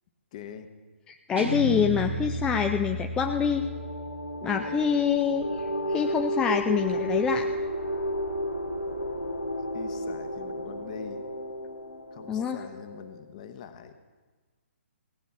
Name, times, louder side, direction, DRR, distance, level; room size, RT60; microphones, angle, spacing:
voice 1, 0.3-0.7 9.7-11.2 12.1-13.9, left 8 dB, 35° left, 9 dB, 1.0 m, -43 dB
voice 2, 1.1-3.7 4.4-5.6 5.9-7.5 12.3-12.6, left 7 dB, 10° left, 5 dB, 0.4 m, -26 dB
Guitar, 1.4-4.6, right 1 dB, 65° right, 1.5 m, -33 dB
sound 1, 2.9-13.2, equal, 90° left, 2.4 m, -33 dB
17.0 x 8.2 x 6.1 m, 1.4 s
figure-of-eight pair, 135°, 7 cm